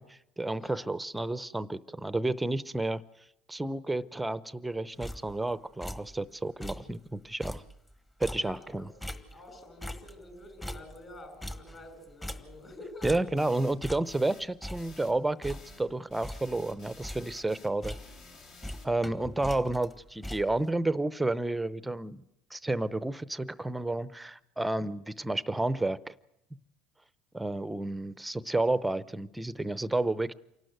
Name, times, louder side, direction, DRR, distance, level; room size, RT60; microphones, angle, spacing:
voice 1, 0.0-3.0 3.5-7.6 8.2-8.9 13.0-18.0 18.8-22.2 22.5-26.1 27.3-30.3, right 2 dB, 5° right, 16 dB, 0.7 m, -31 dB
sound 1, 5.0-5.5 5.8-6.2 6.5-7.0 7.3-9.6 9.8-12.7 13.0-13.5 13.8-14.3 14.6-15.9 16.2-16.6 16.9-17.5 17.8-18.4 18.6-20.7, left 1 dB, 15° left, 1.4 m, -42 dB
voice 2, 8.3-8.9 9.3-13.2 19.1-19.3, left 1 dB, 30° left, 6 dB, 6.3 m, -48 dB
sound 2, 13.4-13.8 14.0-14.5 14.7-15.9 16.1-18.8, left 4 dB, 55° left, 2.5 m, -52 dB
27.5 x 12.0 x 8.0 m, 0.86 s
supercardioid pair, 110°, 0 cm